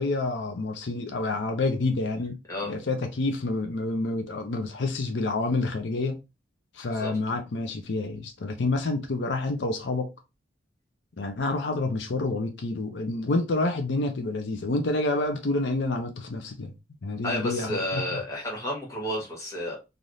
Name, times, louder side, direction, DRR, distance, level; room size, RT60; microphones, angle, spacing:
voice 1, 0.0-2.4 2.7-6.2 6.7-10.1 11.2-16.7 17.0-18.2, left 2 dB, 80° left, 0.6 m, -28 dB
voice 2, 17.2-19.7, left 1 dB, 20° left, 1.4 m, -31 dB
3.3 x 2.5 x 2.6 m
head